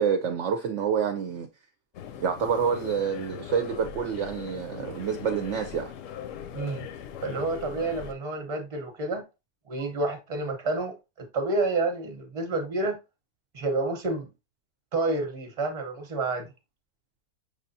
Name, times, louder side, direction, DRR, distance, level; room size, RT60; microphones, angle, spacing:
voice 1, 0.0-1.5 2.2-5.9, right 7 dB, 65° right, 0.8 m, -27 dB
sound 1, 1.9-8.1, left 8 dB, 70° left, 0.9 m, -40 dB
voice 2, 6.5-6.9 7.2-9.2 9.7-13.0 13.5-14.3 14.9-16.5, right 2 dB, 30° right, 0.9 m, -29 dB
5.4 x 3.3 x 2.6 m
omnidirectional pair, 1.5 m